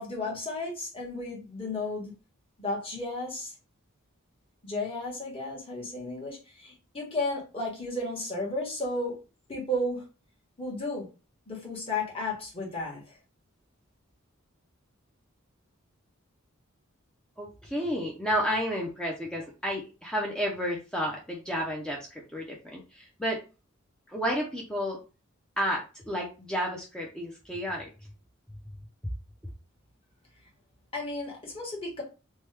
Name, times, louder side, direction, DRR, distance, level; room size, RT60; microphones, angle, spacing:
voice 1, 0.0-2.1 2.6-3.5 4.6-9.2 9.5-10.0 10.6-11.1 11.5-13.0 30.9-32.0, left 2 dB, 25° left, -2 dB, 1.2 m, -33 dB
voice 2, 17.4-22.0 22.3-23.4 24.1-25.0 25.6-27.9, equal, 5° left, -2 dB, 0.5 m, -31 dB
3.0 x 2.2 x 3.2 m, 0.31 s
head